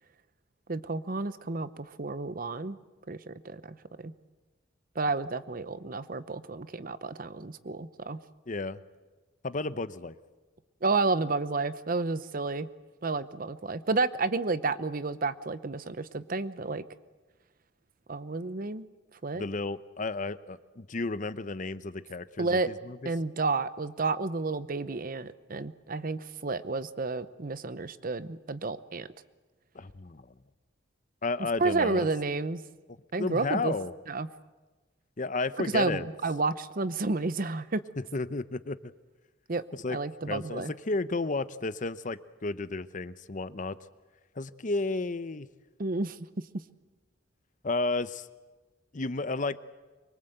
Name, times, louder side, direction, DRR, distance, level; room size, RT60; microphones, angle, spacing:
voice 1, 0.7-2.8 3.1-4.1 4.9-8.2 10.8-12.7 13.0-16.8 18.1-18.9 19.2-19.4 22.4-22.8 23.0-29.1 31.6-32.6 33.1-33.7 34.1-34.3 35.7-37.8 39.5-39.6 39.9-40.7 45.8-46.2, right 3 dB, 45° right, 14 dB, 0.8 m, -31 dB
voice 2, 8.5-8.8 9.4-10.1 19.3-23.0 29.7-30.2 31.2-32.1 33.2-33.9 35.2-36.0 38.1-38.9 39.8-40.0 40.3-43.8 44.4-45.5 47.6-48.3 48.9-49.6, left 3 dB, 40° left, 14 dB, 0.8 m, -32 dB
24.5 x 23.0 x 8.0 m, 1.2 s
head